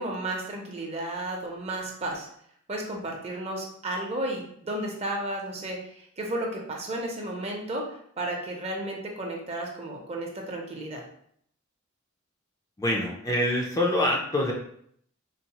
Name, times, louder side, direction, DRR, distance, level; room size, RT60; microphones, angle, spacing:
voice 1, 0.0-2.3 2.7-11.0, right 1 dB, 30° right, 0 dB, 0.6 m, -33 dB
voice 2, 12.8-14.5, left 1 dB, 20° left, -2 dB, 0.4 m, -25 dB
3.9 x 2.0 x 2.8 m, 0.66 s
head